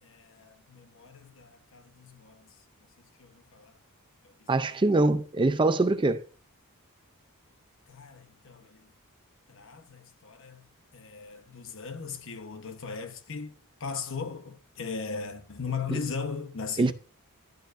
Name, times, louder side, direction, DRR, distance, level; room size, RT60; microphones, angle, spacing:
voice 1, 0.0-2.6 3.0-3.8 4.2-4.8 7.9-8.9 9.5-10.7 10.9-16.9, left 5 dB, 60° left, 1.1 m, -38 dB
voice 2, 4.5-6.2 16.8-16.9, right 2 dB, 20° right, 0.5 m, -23 dB
12.0 x 9.0 x 2.6 m
head